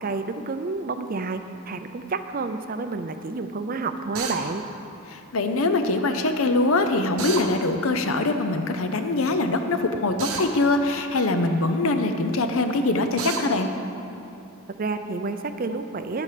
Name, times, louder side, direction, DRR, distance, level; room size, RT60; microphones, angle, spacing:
voice 1, 0.0-4.6 14.8-16.2, right 3 dB, 40° right, 9 dB, 0.5 m, -29 dB
Drill, 4.1-4.4 7.2-7.5 10.2-10.5 13.2-13.4, right 5 dB, 80° right, 1.1 m, -29 dB
voice 2, 5.1-13.7, left 2 dB, 70° left, 7 dB, 0.7 m, -23 dB
11.0 x 8.4 x 5.1 m, 2.9 s
head